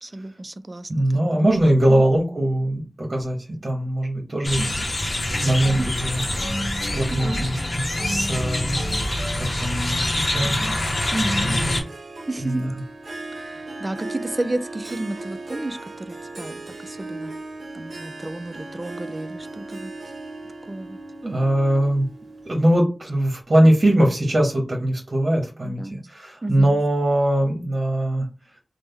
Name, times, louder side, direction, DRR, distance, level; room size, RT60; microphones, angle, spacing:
voice 1, 0.0-1.3 1.9-2.1 4.6-4.8 7.1-7.4 10.4-10.7 11.1-11.6 12.3-12.7 13.4-17.3 17.7-19.9 20.7-21.0 25.6-26.1 26.4-26.8, right 2 dB, 35° right, 11 dB, 0.3 m, -32 dB
voice 2, 0.9-4.7 5.4-6.2 6.8-11.8 12.4-12.7 21.2-22.1 22.5-28.3, right 1 dB, 50° right, -1 dB, 0.9 m, -22 dB
sound 1, 4.4-11.8, left 1 dB, 55° left, 0.7 m, -25 dB
sound 2, 5.3-10.2, equal, 5° left, 0.9 m, -35 dB
Harp, 10.6-22.8, right 2 dB, 80° right, 0.6 m, -37 dB
3.2 x 2.0 x 3.5 m, 0.31 s
wide cardioid pair, 80°, 0 cm